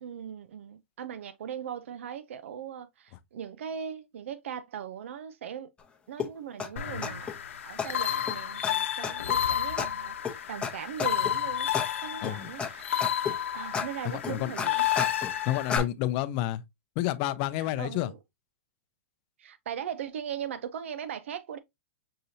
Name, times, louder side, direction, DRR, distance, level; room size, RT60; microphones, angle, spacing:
voice 1, 0.0-5.7 6.1-7.3 7.6-11.7 12.0-13.1 13.5-14.9 15.2-15.3 17.6-18.2 19.4-21.6, right 8 dB, 75° right, 0.5 m, -39 dB
sound 1, 6.2-6.3 6.6-6.7 7.0-7.3 7.8-7.9 8.3-8.4 8.6-8.7 9.0-9.4 9.8-9.9 10.2-10.3 10.6-10.7 11.0-11.3 11.7-11.9 12.2-12.7 13.0-13.4 13.7-13.9 14.2-15.3 15.7-15.8, left 6 dB, 15° left, 0.8 m, -31 dB
The Lamb, 6.8-15.8, left 10 dB, 80° left, 0.8 m, -31 dB
voice 2, 14.0-14.5 15.5-16.6 17.0-18.1, left 14 dB, 45° left, 0.5 m, -29 dB
6.5 x 2.7 x 2.7 m
hypercardioid pair, 125°, 7 cm